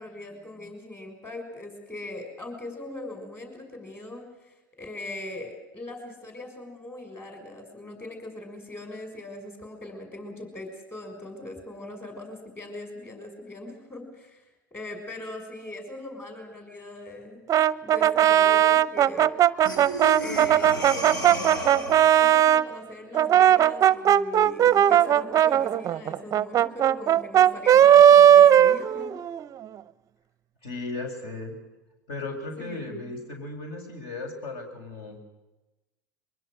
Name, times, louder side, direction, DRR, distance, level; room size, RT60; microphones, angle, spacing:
voice 1, 0.0-14.4 14.7-17.5 17.8-19.4 20.2-29.1 32.6-33.1, left 2 dB, 20° left, 5 dB, 6.4 m, -40 dB
Brass instrument, 17.5-22.7 23.1-29.5, right 10 dB, 30° right, 0.7 m, -18 dB
Breathing, 19.6-22.2, equal, 90° left, 5.1 m, -33 dB
voice 2, 30.6-31.6 32.1-35.2, left 2 dB, 55° left, 4 dB, 7.1 m, -36 dB
23.5 x 22.5 x 6.6 m, 1.0 s
hypercardioid pair, 95°, 10 cm